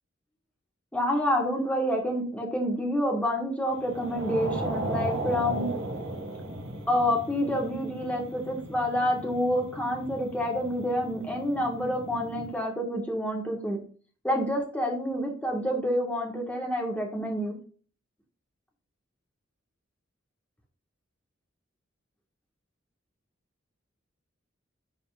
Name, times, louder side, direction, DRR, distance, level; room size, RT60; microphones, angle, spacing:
voice 1, 0.9-5.7 6.9-13.8 14.2-17.5, equal, 5° left, 0 dB, 1.5 m, -28 dB
sound 1, 3.8-12.5, right 1 dB, 65° right, 1.6 m, -36 dB
10.0 x 4.2 x 2.4 m, 0.41 s
head